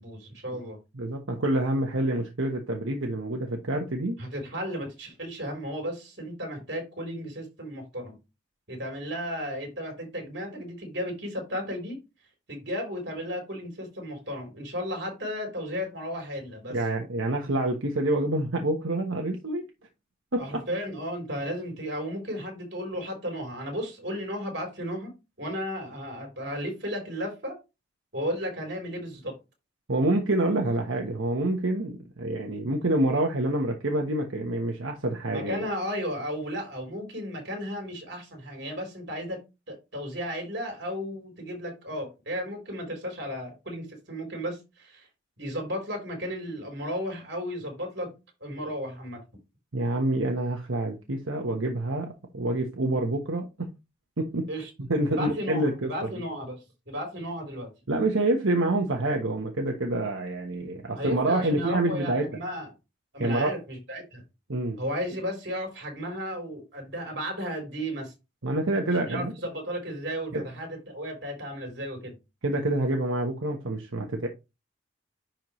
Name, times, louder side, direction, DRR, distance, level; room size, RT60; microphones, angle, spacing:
voice 1, 0.0-0.8 4.2-8.2 8.7-12.0 12.5-16.8 20.4-25.1 25.4-27.6 28.1-29.3 35.3-39.4 39.7-45.1 45.4-48.1 48.4-49.2 54.5-54.7 55.1-57.7 60.9-62.7 63.1-64.2 64.8-68.1 68.9-72.1, equal, 55° right, 3.9 m, -34 dB
voice 2, 0.9-4.2 16.7-19.7 20.3-20.6 29.9-35.7 49.7-53.7 54.2-54.5 54.9-55.9 57.9-62.3 63.2-63.6 64.5-64.8 68.4-69.3 70.3-70.4 72.4-74.3, right 1 dB, 85° right, 1.2 m, -27 dB
10.5 x 4.4 x 3.2 m
head